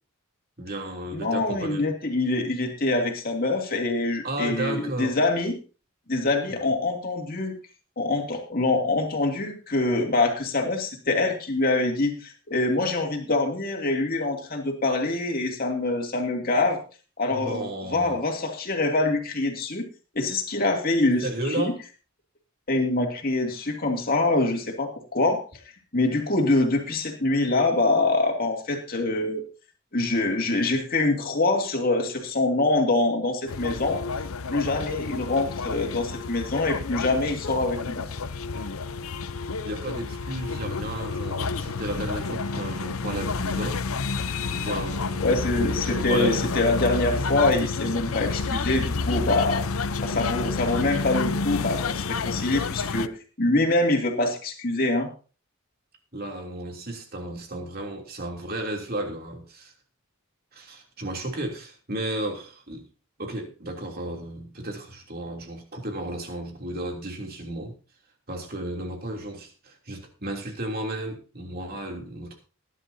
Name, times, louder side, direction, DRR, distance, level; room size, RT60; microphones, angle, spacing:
voice 1, 0.6-1.8 4.2-5.2 17.3-18.2 21.1-21.8 39.6-43.8 44.5-45.4 45.8-46.5 56.1-59.7 60.5-62.8 63.2-67.7 68.3-72.4, right 1 dB, 45° right, 3.0 m, -33 dB
voice 2, 1.1-5.5 6.1-7.6 8.0-16.8 17.2-19.9 20.1-21.7 22.7-25.4 25.9-29.4 29.9-34.0 34.5-38.0 45.2-49.6 50.0-55.1, left 2 dB, 45° left, 2.7 m, -25 dB
sound 1, 33.5-53.1, left 4 dB, 85° left, 0.7 m, -29 dB
19.5 x 11.0 x 2.8 m
head